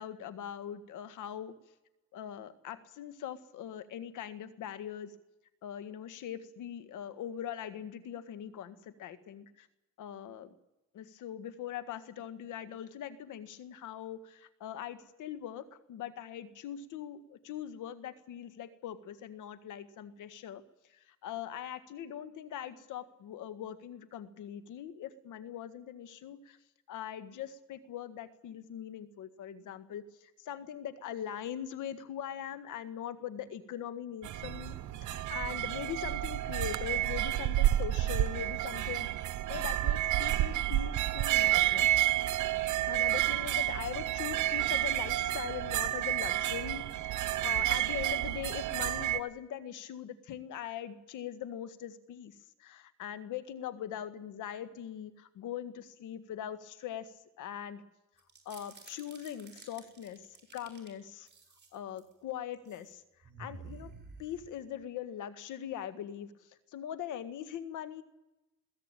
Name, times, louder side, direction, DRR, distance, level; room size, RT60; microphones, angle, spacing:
voice 1, 0.0-1.5 2.1-5.1 5.6-9.7 10.0-10.5 10.9-20.6 20.9-26.6 26.9-39.1 39.5-41.9 42.9-57.1 57.4-57.8 58.5-61.3 61.7-63.0 63.4-63.9 64.2-68.0, left 10 dB, 85° left, 13 dB, 1.8 m, -41 dB
sound 1, 34.2-49.2, right 14 dB, 80° right, 1.1 m, -30 dB
sound 2, 58.2-60.9 61.3-62.1 62.5-62.9 63.2-64.8, right 4 dB, 35° right, 6.3 m, -51 dB
21.5 x 16.0 x 9.1 m, 0.98 s
cardioid pair, 90°, 30 cm